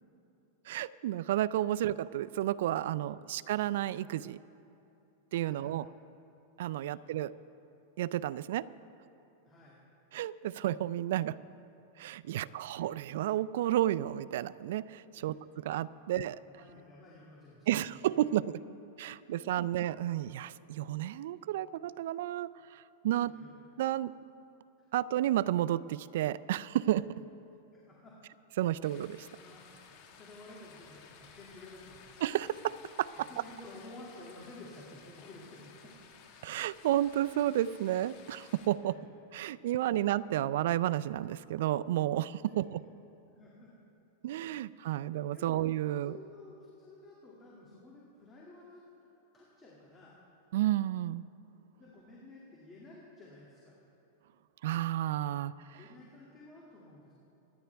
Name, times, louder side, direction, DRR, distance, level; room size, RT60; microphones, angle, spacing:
voice 1, 0.7-4.4 5.3-5.9 6.6-7.3 8.0-8.7 10.1-11.4 12.0-16.4 17.7-18.6 19.0-23.3 23.8-24.1 24.9-27.1 28.6-29.3 32.2-33.1 36.4-39.0 39.3-42.8 44.2-46.1 50.5-51.2 54.6-55.8, right 13 dB, 70° right, 16 dB, 0.4 m, -31 dB
voice 2, 5.4-5.7 6.8-7.1 9.4-9.8 12.3-12.7 15.1-15.4 15.9-16.2 16.4-18.2 19.4-19.7 23.2-23.5 24.8-24.9 27.0-27.2 27.7-28.2 29.3-29.7 30.1-32.0 33.1-35.9 38.8-39.1 39.9-40.0 42.5-42.6 43.3-43.7 44.5-44.8 45.3-45.6 46.0-48.8 49.3-50.1 51.7-53.7 55.7-57.1, left 2 dB, 20° left, -5 dB, 2.4 m, -53 dB
sound 1, 28.8-38.7, left 6 dB, 50° left, 1.6 m, -56 dB
25.0 x 10.5 x 3.5 m, 2.8 s
supercardioid pair, 140°, 0 cm